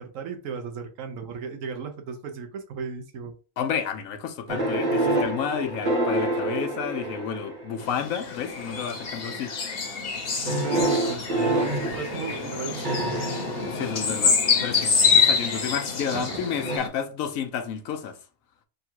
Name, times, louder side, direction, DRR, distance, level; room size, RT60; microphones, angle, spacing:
voice 1, 0.0-3.3 10.4-13.2 16.1-16.4, right 5 dB, 80° right, 1.2 m, -35 dB
voice 2, 3.6-9.5 13.7-18.2, left 7 dB, 85° left, 1.1 m, -31 dB
sound 1, 4.5-7.9 8.6-9.1 10.5-14.6 16.7-16.8, right 1 dB, 35° right, 1.2 m, -27 dB
sound 2, 7.8-16.9, left 5 dB, 50° left, 1.0 m, -26 dB
3.7 x 2.3 x 4.4 m
omnidirectional pair, 1.4 m